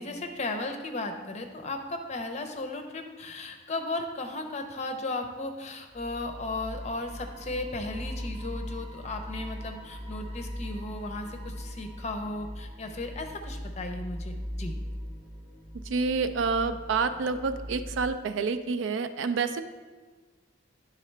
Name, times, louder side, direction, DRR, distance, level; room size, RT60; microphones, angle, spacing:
voice 1, 0.0-14.7, left 2 dB, 35° left, 5 dB, 0.6 m, -35 dB
sound 1, 5.9-18.1, equal, 30° right, 0.7 m, -39 dB
voice 2, 15.8-19.6, right 4 dB, 75° right, 10 dB, 0.4 m, -28 dB
10.0 x 3.7 x 3.2 m, 1.4 s
head